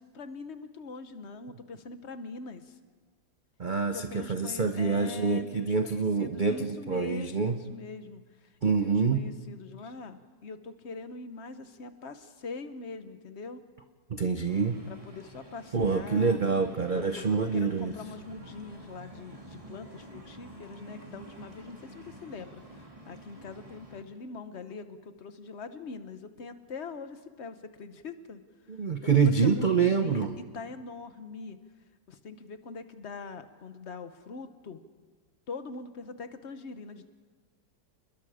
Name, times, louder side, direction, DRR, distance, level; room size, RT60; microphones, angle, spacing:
voice 1, 0.0-2.8 3.9-8.5 8.8-13.6 14.9-16.4 16.9-28.4 29.0-30.3 30.5-31.6 32.1-34.8 35.5-37.2, left 4 dB, 45° left, 10 dB, 1.1 m, -43 dB
voice 2, 3.6-7.6 8.6-9.2 14.1-14.7 15.7-17.9 28.7-30.4, right 5 dB, 55° right, 7 dB, 0.5 m, -26 dB
sound 1, 14.5-24.0, right 1 dB, 20° right, 2.5 m, -49 dB
29.0 x 21.0 x 5.0 m, 1.5 s
omnidirectional pair, 2.0 m